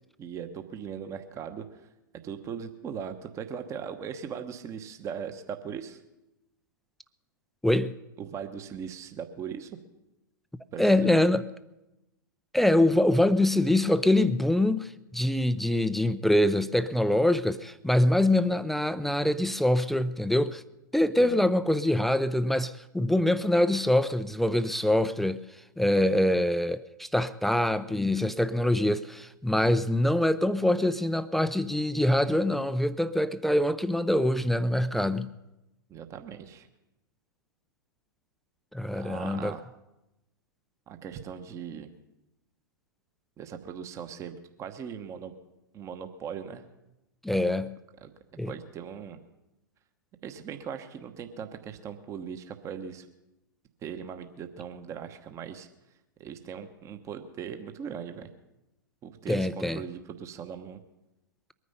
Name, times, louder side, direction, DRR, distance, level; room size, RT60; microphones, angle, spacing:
voice 1, 0.2-1.6 2.2-6.0 8.2-9.7 10.7-11.1 21.2-21.5 35.9-36.7 38.9-39.6 40.9-41.9 43.4-45.3 45.7-46.6 48.0-48.1 48.5-49.2 50.2-53.0 53.8-55.7 56.2-58.3 59.0-60.8, right 7 dB, 25° right, 1.1 m, -39 dB
voice 2, 7.6-7.9 10.8-11.5 12.5-20.6 20.9-25.4 25.8-35.3 38.7-39.6 47.2-47.8 48.4-48.5 59.3-59.8, left 1 dB, ahead, 0.4 m, -24 dB
22.0 x 9.6 x 5.5 m
figure-of-eight pair, 105°, 11 cm